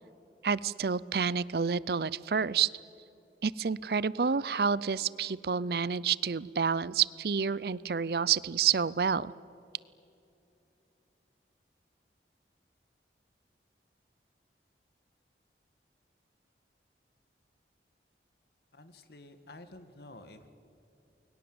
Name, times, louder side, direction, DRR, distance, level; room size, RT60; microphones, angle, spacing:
voice 1, 0.4-2.7 3.4-9.3, right 6 dB, 60° right, 20 dB, 0.5 m, -29 dB
voice 2, 18.7-20.5, left 2 dB, 65° left, 9 dB, 1.8 m, -51 dB
29.5 x 22.5 x 7.9 m, 2.8 s
head